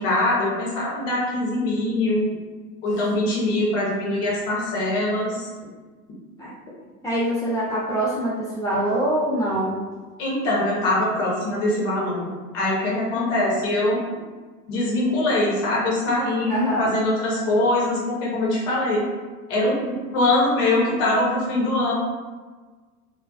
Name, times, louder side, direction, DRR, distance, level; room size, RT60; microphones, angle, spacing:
voice 1, 0.0-2.3 2.8-5.5 10.2-12.3 12.5-14.0 14.7-19.0 19.5-21.9, left 1 dB, 50° left, -5 dB, 0.8 m, -23 dB
voice 2, 7.0-9.8 16.5-16.9, right 1 dB, 10° left, -8 dB, 0.4 m, -24 dB
2.4 x 2.2 x 2.3 m, 1.4 s
figure-of-eight pair, 85°, 46 cm